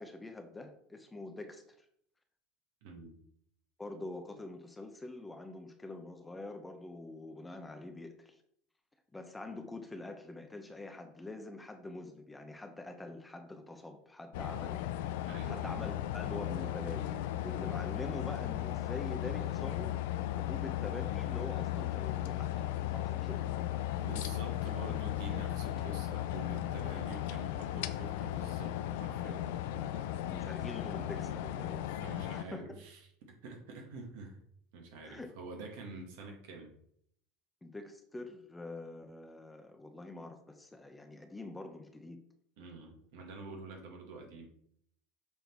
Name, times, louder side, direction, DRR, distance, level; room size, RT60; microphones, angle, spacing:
voice 1, 0.0-1.9 3.8-8.4 9.1-19.9 20.3-23.5 29.7-31.8 32.3-32.8 35.0-35.3 37.6-42.2, left 2 dB, 10° left, 6 dB, 0.9 m, -45 dB
voice 2, 2.8-3.2 15.3-15.8 22.5-22.6 24.0-29.5 31.1-31.2 32.0-33.0 33.3-34.4 34.7-36.7 42.6-44.4, right 3 dB, 70° right, 2 dB, 2.0 m, -47 dB
sound 1, 14.3-32.4, left 13 dB, 75° left, 0.5 m, -36 dB
7.1 x 3.8 x 4.6 m, 0.67 s
hypercardioid pair, 95°, 0 cm